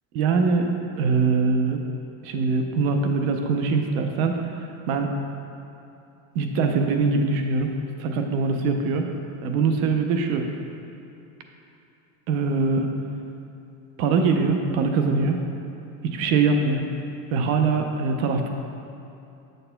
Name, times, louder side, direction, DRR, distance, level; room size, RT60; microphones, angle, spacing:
voice 1, 0.1-0.7 1.0-1.8 2.2-4.3 4.9-5.1 6.3-7.7 8.0-9.1 9.4-10.4 12.3-12.9 14.0-15.4 16.0-16.9 17.3-18.5, right 4 dB, 75° right, 4 dB, 0.7 m, -22 dB
7.7 x 6.5 x 2.2 m, 2.7 s
supercardioid pair, 140°, 41 cm